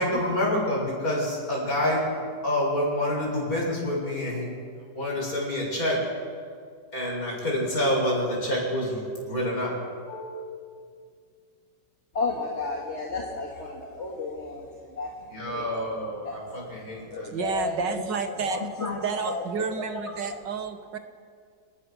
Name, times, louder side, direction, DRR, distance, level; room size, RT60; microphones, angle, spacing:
voice 1, 0.0-2.1 2.4-4.5 4.9-6.0 6.9-9.7 10.1-10.5 15.3-17.6, left 1 dB, 55° left, -2 dB, 7.7 m, -27 dB
voice 2, 12.1-15.7 16.2-16.4 17.1-18.0 18.4-19.4 19.8-20.1, left 3 dB, 40° left, -1 dB, 2.5 m, -33 dB
voice 3, 17.3-18.6 19.0-21.0, right 5 dB, 85° right, 7 dB, 2.2 m, -30 dB
29.0 x 20.0 x 6.5 m, 2.1 s
omnidirectional pair, 1.9 m